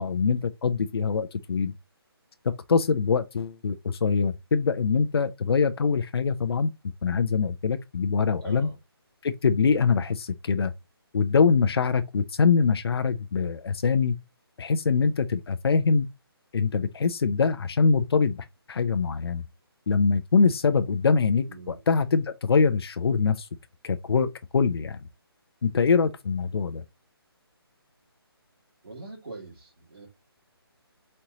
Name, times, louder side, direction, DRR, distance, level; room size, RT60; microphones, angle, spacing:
voice 1, 0.0-1.7 2.4-6.7 7.0-8.7 9.2-10.7 11.1-14.1 14.6-16.1 16.5-19.4 19.9-23.5 23.8-25.0 25.6-26.8, left 5 dB, 70° left, 0.5 m, -24 dB
voice 2, 8.4-8.8 21.5-21.8 28.8-30.1, right 3 dB, 65° right, 2.1 m, -42 dB
4.3 x 3.0 x 3.8 m
hypercardioid pair, 165°, 13 cm